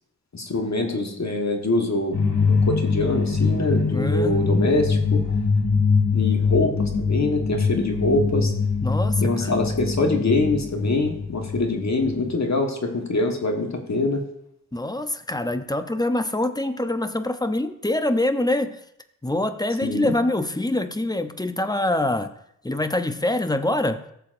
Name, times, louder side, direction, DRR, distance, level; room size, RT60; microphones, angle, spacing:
voice 1, 0.3-5.4 6.1-8.5 9.2-14.2 19.8-20.1, left 2 dB, 45° left, 4 dB, 1.3 m, -24 dB
sound 1, 2.1-12.3, left 4 dB, 80° left, 2.4 m, -23 dB
voice 2, 3.9-4.5 8.8-9.6 14.7-18.8 19.2-22.3 22.6-24.0, left 1 dB, 10° left, 9 dB, 0.6 m, -25 dB
15.0 x 6.9 x 2.5 m, 0.73 s
wide cardioid pair, 75°, 38 cm